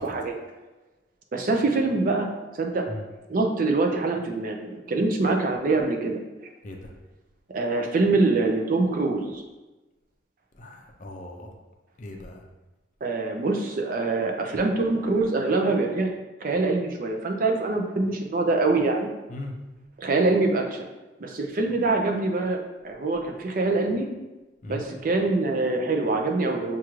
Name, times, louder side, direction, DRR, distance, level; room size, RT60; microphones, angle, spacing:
voice 1, 0.0-0.4 1.3-2.8 3.3-6.2 7.5-9.4 13.0-16.1 16.4-19.1 20.0-20.8 21.2-24.1 24.7-26.8, right 3 dB, 45° right, 3 dB, 0.4 m, -24 dB
voice 2, 10.5-11.5 12.0-12.4 19.3-19.5 24.6-24.8, left 1 dB, 40° left, 2 dB, 0.5 m, -38 dB
6.0 x 2.4 x 3.0 m, 1.1 s
head